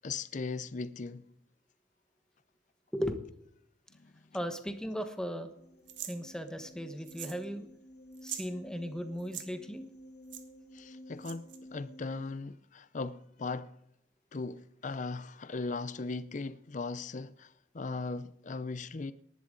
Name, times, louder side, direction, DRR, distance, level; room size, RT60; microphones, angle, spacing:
voice 1, 0.0-1.3 4.0-4.1 10.7-13.7 14.3-19.1, left 3 dB, 40° left, 0.5 m, -38 dB
voice 2, 2.9-3.2 4.3-5.5 6.0-7.7 8.2-9.8, equal, 5° left, 1.3 m, -36 dB
sound 1, 5.6-12.3, equal, 60° left, 2.6 m, -53 dB
sound 2, 5.9-6.2 7.1-7.4 7.7-7.8 8.1-8.5 9.2-9.5 10.3-10.4 11.2-11.6, right 10 dB, 70° right, 1.6 m, -42 dB
19.0 x 11.0 x 3.8 m
head